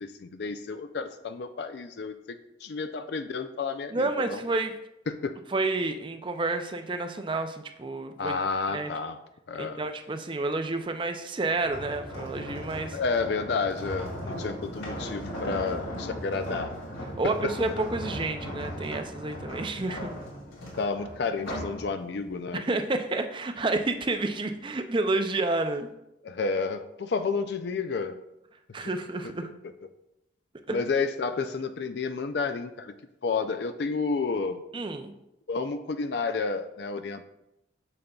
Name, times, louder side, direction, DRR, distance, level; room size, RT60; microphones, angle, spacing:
voice 1, 0.0-4.4 5.1-5.4 8.2-9.2 9.5-9.9 12.9-16.8 17.2-17.8 20.8-22.7 26.2-28.2 30.7-33.0 33.2-34.6 35.5-37.2, left 4 dB, 55° left, 9 dB, 0.4 m, -31 dB
voice 2, 3.9-4.7 5.5-8.4 8.7-8.9 9.6-13.0 17.2-20.1 22.5-25.9 28.7-29.5 30.7-30.8 34.7-35.1, right 2 dB, 25° right, 7 dB, 0.4 m, -30 dB
sound 1, 11.6-21.8 22.3-22.5, equal, 85° left, 2.4 m, -37 dB
8.7 x 6.7 x 2.3 m, 0.87 s
head